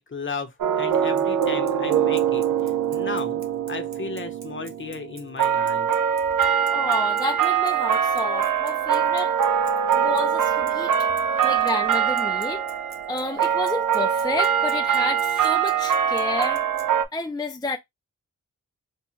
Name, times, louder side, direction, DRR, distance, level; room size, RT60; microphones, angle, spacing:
voice 1, 0.0-3.4 3.7-5.9 11.3-11.5, left 4 dB, 40° left, 0.8 m, -35 dB
sound 1, 0.6-17.1, right 8 dB, 75° right, 0.6 m, -23 dB
Bicycle, 0.9-16.9, right 4 dB, 55° right, 0.9 m, -46 dB
voice 2, 6.7-9.4 9.9-11.1 11.4-12.6 13.1-16.6 17.1-17.8, left 2 dB, 15° left, 0.4 m, -30 dB
3.5 x 2.1 x 3.1 m
wide cardioid pair, 85°, 32 cm